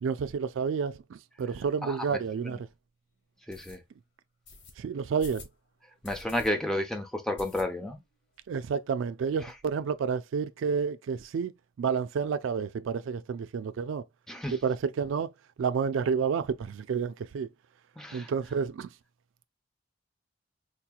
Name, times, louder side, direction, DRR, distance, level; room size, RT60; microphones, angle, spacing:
voice 1, 0.0-2.6 4.8-5.5 8.5-11.5 11.8-14.0 14.5-15.3 15.6-17.5 18.1-18.9, right 6 dB, 85° right, 0.3 m, -30 dB
voice 2, 1.8-2.6 3.5-3.8 6.0-8.0 9.4-9.5 14.3-14.6 18.0-18.3, left 1 dB, 5° left, 0.7 m, -32 dB
sound 1, 2.1-2.2 2.7-2.8 3.5-3.8 4.5-4.7 5.2-5.6 6.0-6.5 6.8-6.9 7.4-8.0 8.4-8.5 8.7-8.8 9.1-9.7, left 2 dB, 65° left, 1.0 m, -48 dB
4.6 x 2.9 x 2.3 m
head